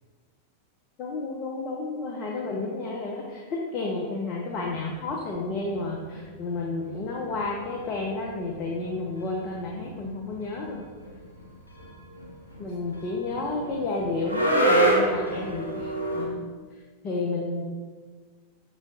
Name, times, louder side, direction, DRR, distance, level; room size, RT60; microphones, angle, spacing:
voice 1, 1.0-10.8 12.6-15.9 16.2-16.5 17.0-17.6, left 3 dB, 35° left, -2 dB, 0.6 m, -31 dB
sound 1, 4.5-5.4 5.7-6.6 6.8-7.0 7.3-7.4 7.6-16.3, right 1 dB, 85° left, 0.8 m, -28 dB
6.1 x 3.1 x 2.7 m, 1.4 s
figure-of-eight pair, 90°, 0 cm